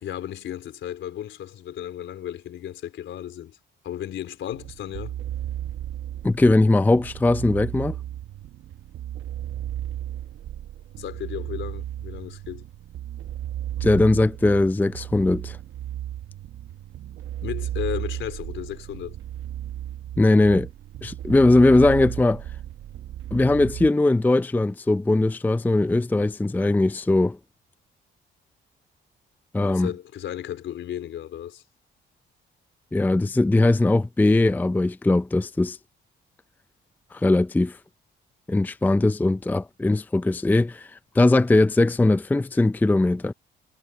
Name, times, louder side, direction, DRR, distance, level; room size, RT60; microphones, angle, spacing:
voice 1, 0.0-3.6 3.8-5.2 11.0-12.7 17.4-19.2 29.7-31.6, left 11 dB, 75° left, 4.2 m, -34 dB
sound 1, 4.5-23.9, right 11 dB, 75° right, 1.1 m, -34 dB
voice 2, 6.2-8.0 13.8-15.6 20.2-20.7 21.0-22.4 23.3-27.4 29.5-29.9 32.9-35.8 37.1-37.8 38.5-40.9 41.2-43.3, left 2 dB, 10° left, 0.5 m, -20 dB
cardioid pair, 90°, 20 cm